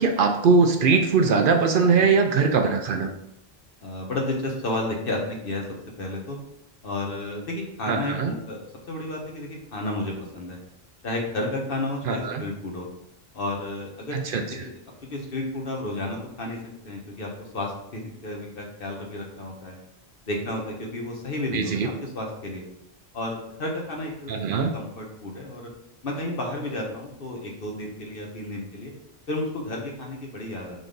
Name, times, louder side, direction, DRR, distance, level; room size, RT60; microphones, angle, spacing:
voice 1, 0.0-3.1 7.9-8.3 12.1-12.4 14.1-14.4 21.5-21.9 24.3-24.7, right 4 dB, 60° right, 4 dB, 0.7 m, -21 dB
voice 2, 3.8-5.6 6.0-6.4 6.8-8.6 8.9-10.6 11.0-12.9 13.3-14.2 14.6-14.7 15.1-16.6 16.8-19.8 20.3-22.6 23.1-24.5 24.7-25.7 26.0-28.9 29.3-30.9, left 1 dB, 60° left, 0 dB, 1.2 m, -32 dB
4.0 x 3.4 x 3.8 m, 0.77 s
omnidirectional pair, 1.0 m